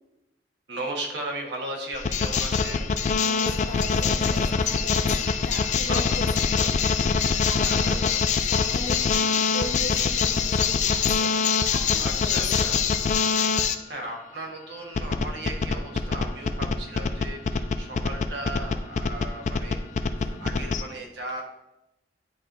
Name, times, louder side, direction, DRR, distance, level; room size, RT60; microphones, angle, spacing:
voice 1, 0.7-3.3 5.8-6.9 7.6-8.3 12.0-12.8 13.9-19.8 20.4-21.4, right 1 dB, 80° right, 0 dB, 1.3 m, -36 dB
sound 1, 1.9-13.7 14.9-20.8, left 5 dB, 40° left, 0.3 m, -24 dB
voice 2, 3.2-6.2 6.5-6.7 7.1-8.0 8.4-11.4 11.7-12.7 20.2-20.7, left 1 dB, 75° left, 2 dB, 1.0 m, -38 dB
9.2 x 4.4 x 2.6 m, 0.94 s
head